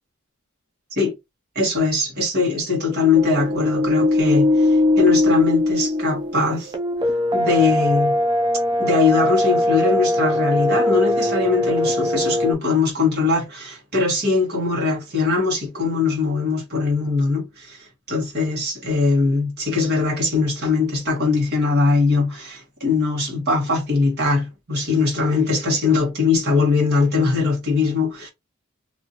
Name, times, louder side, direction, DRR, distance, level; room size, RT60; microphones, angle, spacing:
voice 1, 1.5-6.7 7.3-8.2 8.8-28.3, left 4 dB, 50° right, 1.5 m, -21 dB
sound 1, 3.1-12.5, left 1 dB, 20° right, 0.3 m, -20 dB
2.9 x 2.6 x 2.8 m
head